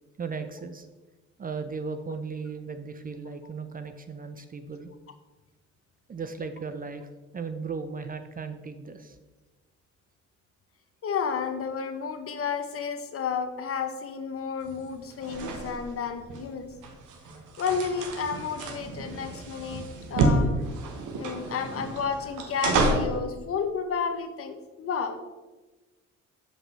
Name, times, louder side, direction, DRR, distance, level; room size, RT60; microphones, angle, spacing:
voice 1, 0.2-0.9 1.4-4.9 6.1-7.1 7.3-9.2, right 5 dB, 30° right, 9 dB, 0.5 m, -36 dB
voice 2, 11.0-16.7 17.6-20.6 21.1-25.2, left 6 dB, 50° left, 8 dB, 0.8 m, -31 dB
sound 1, 14.6-23.2, right 2 dB, 85° right, 1.1 m, -30 dB
7.4 x 5.1 x 3.2 m, 1.2 s
cardioid pair, 90°, 30 cm